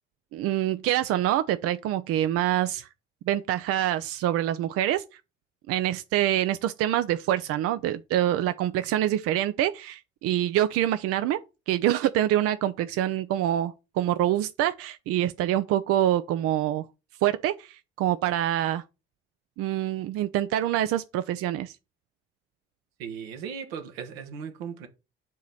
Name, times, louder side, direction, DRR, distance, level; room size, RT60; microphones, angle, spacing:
voice 1, 0.3-2.9 3.3-5.0 5.7-11.4 11.7-16.8 17.2-18.8 19.6-21.8, right 12 dB, 50° right, 0.4 m, -25 dB
voice 2, 23.0-24.9, right 7 dB, 70° right, 1.0 m, -37 dB
7.5 x 3.0 x 5.5 m
figure-of-eight pair, 45°, 31 cm